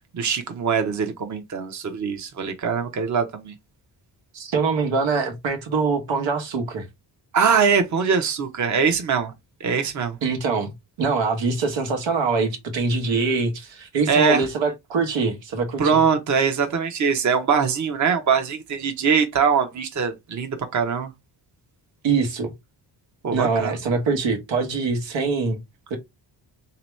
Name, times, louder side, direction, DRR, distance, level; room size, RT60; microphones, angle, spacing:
voice 1, 0.1-3.5 7.3-9.3 9.6-10.2 14.1-14.4 15.8-21.1 23.2-23.7, right 6 dB, 40° right, 0.8 m, -22 dB
voice 2, 4.3-6.9 10.2-10.7 11.0-16.0 22.0-22.5 23.3-25.6 25.9-26.0, right 4 dB, 85° right, 1.2 m, -24 dB
3.5 x 2.9 x 3.1 m
cardioid pair, 115°, 44 cm